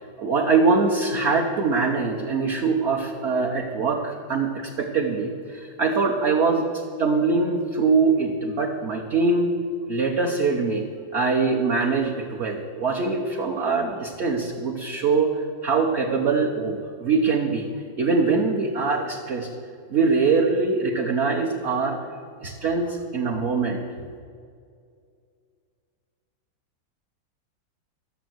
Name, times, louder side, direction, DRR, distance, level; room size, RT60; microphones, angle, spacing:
voice 1, 0.2-6.7 7.0-9.5 9.9-10.8 11.1-15.3 15.6-17.7 18.0-19.5 19.9-23.8, right 4 dB, 45° right, 0 dB, 0.9 m, -23 dB
12.0 x 7.2 x 7.8 m, 2.2 s
omnidirectional pair, 2.0 m